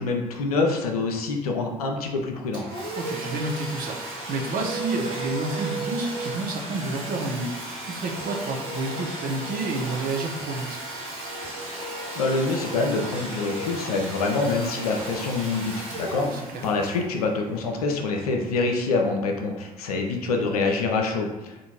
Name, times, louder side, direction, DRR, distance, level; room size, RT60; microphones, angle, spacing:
voice 1, 0.0-2.6 12.2-21.5, left 3 dB, 85° left, 2 dB, 0.4 m, -26 dB
Domestic sounds home sounds, 2.5-18.0, right 1 dB, 70° right, 1.3 m, -35 dB
voice 2, 3.0-10.8 16.2-16.6, right 2 dB, 50° right, 0 dB, 0.7 m, -30 dB
3.6 x 2.5 x 2.8 m, 1.0 s
figure-of-eight pair, 45°, 19 cm